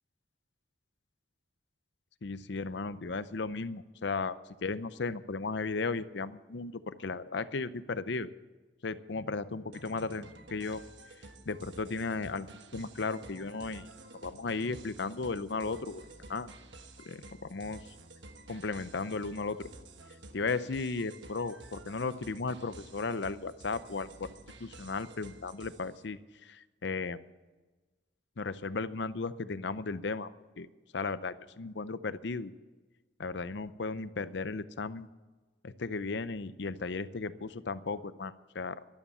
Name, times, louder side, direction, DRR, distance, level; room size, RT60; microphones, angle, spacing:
voice 1, 2.2-4.4 4.6-8.3 8.8-10.8 11.5-13.9 14.2-16.0 16.3-16.5 17.1-17.9 18.5-19.7 20.3-24.3 24.6-27.2 28.4-30.3 30.6-30.7 30.9-32.5 33.2-35.1 35.6-38.8, left 4 dB, 65° left, 14 dB, 0.6 m, -35 dB
sound 1, 9.7-26.0, right 2 dB, 70° right, 1.3 m, -51 dB
12.5 x 12.5 x 7.1 m, 1.2 s
head